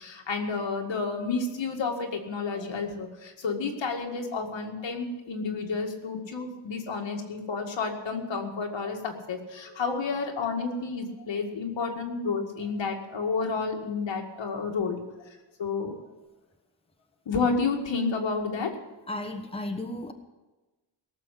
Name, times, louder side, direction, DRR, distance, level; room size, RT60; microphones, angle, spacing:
voice 1, 0.0-15.0 15.6-16.0 17.3-18.8, left 4 dB, 85° left, 2 dB, 2.1 m, -30 dB
voice 2, 19.1-20.1, left 1 dB, 15° left, 4 dB, 1.2 m, -34 dB
18.0 x 7.0 x 8.3 m, 1.1 s
wide cardioid pair, 120°, 44 cm